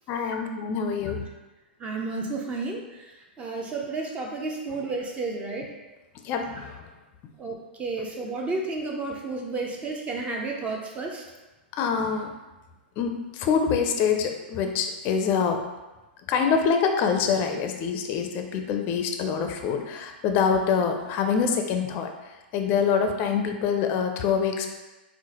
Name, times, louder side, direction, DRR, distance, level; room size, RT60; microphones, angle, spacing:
voice 1, 0.1-1.3 6.2-6.7 11.8-12.3 13.0-15.6 16.3-22.1 22.5-24.7, left 6 dB, 35° left, 5 dB, 0.4 m, -25 dB
voice 2, 1.8-2.8 3.4-5.7 7.4-11.2, right 3 dB, 20° right, 0 dB, 0.5 m, -31 dB
4.5 x 2.1 x 2.9 m, 1.1 s
hypercardioid pair, 115°, 6 cm